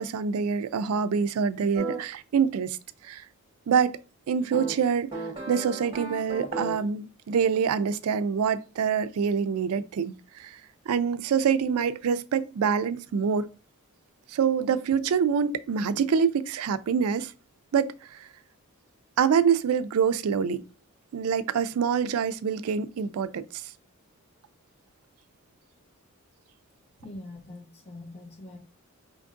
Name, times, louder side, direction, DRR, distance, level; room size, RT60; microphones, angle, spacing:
voice 1, 0.0-2.8 3.0-3.2 3.7-4.0 4.3-5.1 5.5-10.1 10.4-10.6 10.9-13.5 14.3-17.3 17.7-18.3 19.2-20.6 21.1-23.7, right 6 dB, 80° right, 0.4 m, -25 dB
sound 1, 1.7-2.0 4.5-6.9, right 3 dB, 25° right, 1.3 m, -35 dB
voice 2, 27.0-28.6, left 2 dB, 30° left, 1.0 m, -43 dB
5.1 x 3.5 x 2.5 m
head